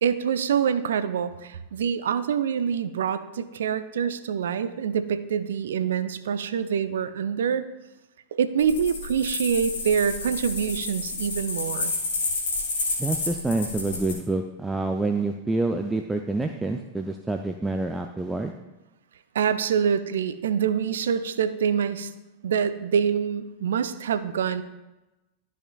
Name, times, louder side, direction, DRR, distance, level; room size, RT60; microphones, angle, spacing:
voice 1, 0.0-7.7 8.3-11.9 19.3-22.1 22.4-24.6, right 7 dB, 65° right, 12 dB, 0.5 m, -25 dB
sound 1, 8.6-14.1, left 3 dB, 60° left, 2.1 m, -30 dB
voice 2, 13.0-18.5, right 2 dB, 10° right, 5 dB, 0.4 m, -27 dB
13.5 x 5.7 x 2.3 m, 1.0 s
figure-of-eight pair, 90°, 0 cm